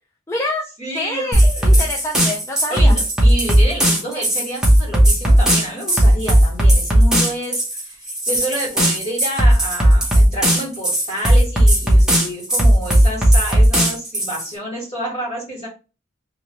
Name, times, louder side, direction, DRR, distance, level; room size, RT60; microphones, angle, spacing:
voice 1, 0.3-0.6 0.9-2.9, left 2 dB, 10° left, 0 dB, 0.4 m, -26 dB
voice 2, 0.8-1.9 2.7-15.7, right 1 dB, 30° left, -4 dB, 2.1 m, -29 dB
sound 1, 1.3-14.5, right 1 dB, 5° right, 0.9 m, -15 dB
3.4 x 3.0 x 3.0 m, 0.32 s
head